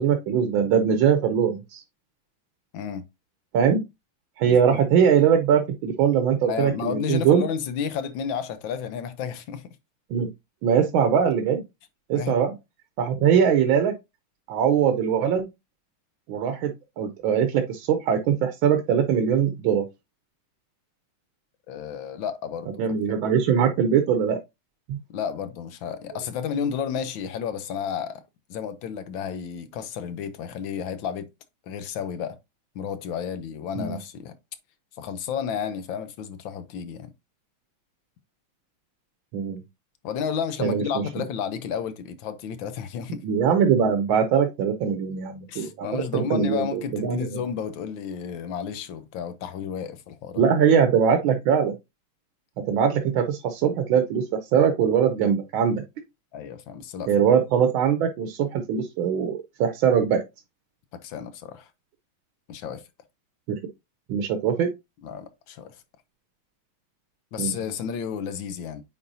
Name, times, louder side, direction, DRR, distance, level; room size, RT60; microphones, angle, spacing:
voice 1, 0.0-1.8 3.5-3.8 4.4-7.4 10.1-10.3 10.6-11.6 12.1-12.5 13.0-13.9 14.5-15.5 16.3-19.9 22.8-24.4 24.9-25.0 33.8-34.0 39.3-39.6 40.6-41.0 43.2-47.3 50.4-51.7 52.6-55.8 57.1-60.2 63.5-63.6 64.1-64.7 67.4-67.5, right 7 dB, 75° right, 1.5 m, -22 dB
voice 2, 2.7-3.0 4.5-4.8 6.5-9.6 12.1-12.4 13.2-13.3 21.7-22.8 25.1-28.2 28.5-31.3 31.7-32.4 32.7-34.3 35.0-37.1 40.0-43.2 45.5-50.4 56.3-57.1 60.9-61.7 62.5-62.8 65.0-65.8 67.3-68.8, left 7 dB, 70° left, 1.4 m, -32 dB
8.9 x 4.1 x 2.7 m
omnidirectional pair, 2.3 m